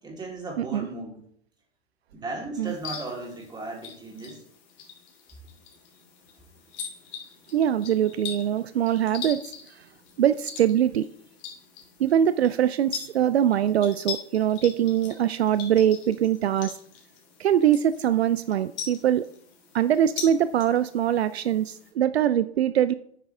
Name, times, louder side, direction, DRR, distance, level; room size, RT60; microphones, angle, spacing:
voice 1, 0.0-1.2 2.1-4.4, right 2 dB, 15° right, -2 dB, 3.8 m, -36 dB
voice 2, 0.6-0.9 2.6-2.7 7.5-9.4 10.2-11.0 12.0-16.7 17.4-19.3 19.7-22.9, right 10 dB, 75° right, 14 dB, 0.5 m, -23 dB
sound 1, 2.6-21.9, left 7 dB, 45° left, 3.3 m, -42 dB
9.4 x 9.4 x 3.6 m, 0.65 s
figure-of-eight pair, 100°, 32 cm